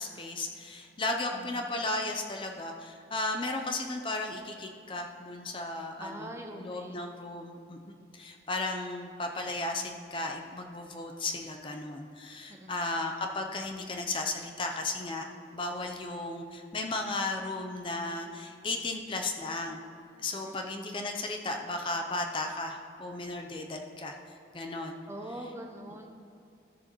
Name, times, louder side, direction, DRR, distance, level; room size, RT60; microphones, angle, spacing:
voice 1, 0.0-15.2 15.5-19.8 20.2-24.2 24.5-25.0, left 2 dB, 30° left, 3 dB, 0.5 m, -35 dB
voice 2, 1.3-1.7 6.0-7.0 12.5-12.9 20.4-20.8 25.1-26.1, right 1 dB, 15° right, 2 dB, 0.6 m, -43 dB
13.5 x 6.8 x 3.0 m, 2.6 s
head